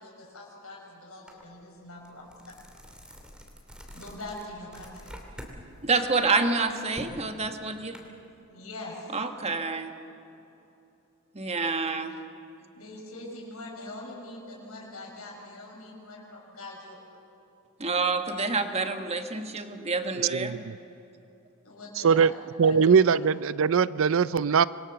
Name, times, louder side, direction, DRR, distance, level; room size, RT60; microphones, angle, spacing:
voice 1, 0.0-2.6 3.9-5.1 8.5-9.1 12.7-17.0 21.6-22.3 22.6-22.8, left 2 dB, 85° left, -2 dB, 6.5 m, -43 dB
sound 1, 1.3-1.4 1.8-5.6 5.9-8.0, equal, 5° right, 3.0 m, -46 dB
voice 2, 5.8-8.0 9.1-9.9 11.3-12.1 17.8-20.6, right 3 dB, 30° right, 6 dB, 1.5 m, -28 dB
voice 3, 20.3-20.7 22.0-22.3 22.6-24.7, right 6 dB, 65° right, 17 dB, 0.5 m, -21 dB
26.5 x 22.5 x 7.0 m, 2.8 s
head